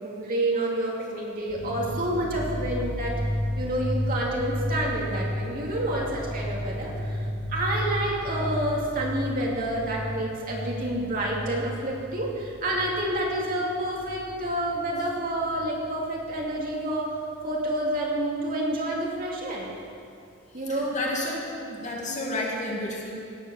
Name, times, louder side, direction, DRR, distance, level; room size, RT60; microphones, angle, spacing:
voice 1, 0.0-3.1 3.5-17.2 17.4-19.7 20.5-21.0, right 1 dB, 45° right, -3 dB, 2.6 m, -29 dB
sound 1, 1.5-16.6 16.8-18.0 18.3-18.4 18.8-19.4, equal, 20° left, 3.0 m, -33 dB
voice 2, 20.7-21.4 21.7-23.1, left 1 dB, 35° left, -2 dB, 2.4 m, -31 dB
17.5 x 8.3 x 7.1 m, 2.5 s
head